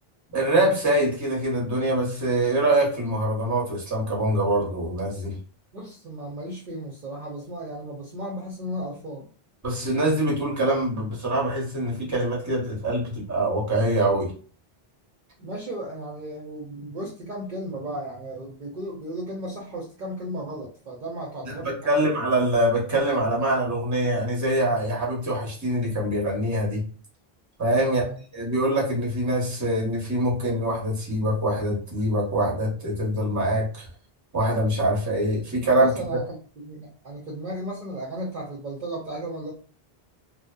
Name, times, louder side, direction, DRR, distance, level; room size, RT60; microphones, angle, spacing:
voice 1, 0.3-5.4 9.6-14.3 21.6-26.8 27.6-28.0 28.3-33.9 34.3-35.9, right 1 dB, 20° right, -3 dB, 0.8 m, -24 dB
voice 2, 5.7-9.3 15.4-22.1 27.7-28.2 35.8-36.2 36.6-39.5, right 1 dB, 55° right, -3 dB, 0.6 m, -35 dB
2.6 x 2.1 x 2.3 m, 0.40 s
omnidirectional pair, 1.0 m